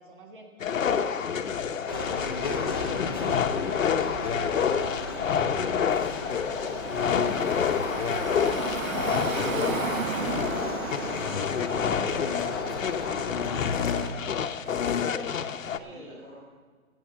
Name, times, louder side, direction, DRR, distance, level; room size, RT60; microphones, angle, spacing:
voice 1, 0.0-5.6 5.9-6.6 7.1-12.5 13.1-15.3 15.7-16.2, right 2 dB, 40° right, 2 dB, 1.7 m, -48 dB
sound 1, 0.6-15.8, left 7 dB, 75° left, 0.9 m, -28 dB
sound 2, 1.9-14.1, left 2 dB, 20° left, 0.5 m, -36 dB
Car passing by / Traffic noise roadway noise, 6.4-13.3, right 7 dB, 80° right, 0.9 m, -35 dB
voice 2, 15.0-16.4, equal, 15° right, -8 dB, 2.6 m, -49 dB
17.0 x 8.0 x 6.5 m, 1.5 s
hypercardioid pair, 175°, 40 cm